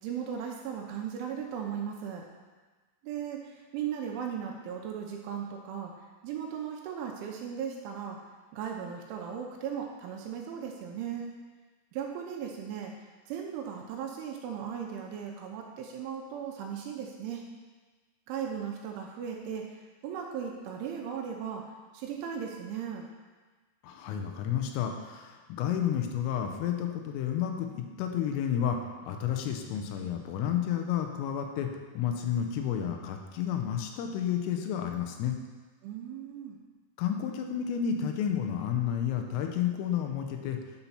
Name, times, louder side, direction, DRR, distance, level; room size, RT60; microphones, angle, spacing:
voice 1, 0.0-2.2 3.0-5.9 6.2-8.2 8.5-11.3 11.9-12.9 13.3-17.4 18.3-21.6 21.9-23.1 35.8-36.6, right 8 dB, 80° right, 0 dB, 3.0 m, -37 dB
voice 2, 23.8-28.8 29.1-31.7 31.9-35.4 37.0-40.6, left 9 dB, 85° left, 4 dB, 3.4 m, -31 dB
11.0 x 4.4 x 5.6 m, 1.3 s
omnidirectional pair, 5.8 m